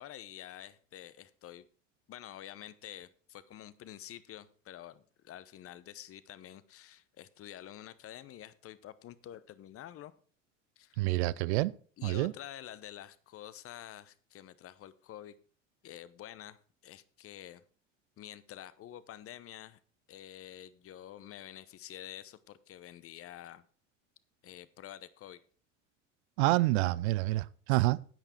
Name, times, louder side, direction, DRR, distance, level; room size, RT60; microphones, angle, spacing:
voice 1, 0.0-1.7 2.1-10.1 10.8-11.0 12.0-15.4 15.8-17.6 18.2-19.8 20.1-23.6 24.4-25.4, left 12 dB, 35° left, 0.9 m, -48 dB
voice 2, 11.0-11.7 12.0-12.3 26.4-28.0, right 19 dB, 60° right, 0.5 m, -28 dB
10.5 x 9.0 x 4.4 m
figure-of-eight pair, 70°, 38 cm